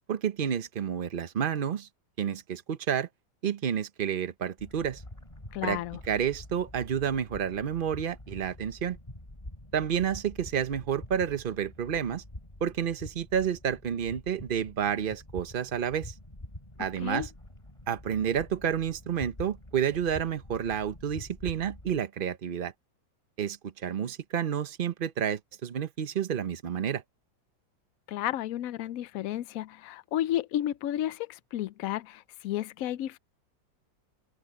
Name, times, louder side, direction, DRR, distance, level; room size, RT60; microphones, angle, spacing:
voice 1, 0.1-1.9 2.2-3.1 3.4-5.0 5.6-5.8 6.1-9.0 9.7-12.2 12.6-16.1 16.8-17.3 17.9-22.7 23.4-27.0, right 8 dB, 90° right, 0.4 m, -30 dB
sound 1, 4.6-22.0, left 1 dB, 15° left, 3.7 m, -47 dB
voice 2, 5.5-6.0 16.8-17.3 28.1-33.2, left 12 dB, 85° left, 0.7 m, -32 dB
omnidirectional pair, 2.1 m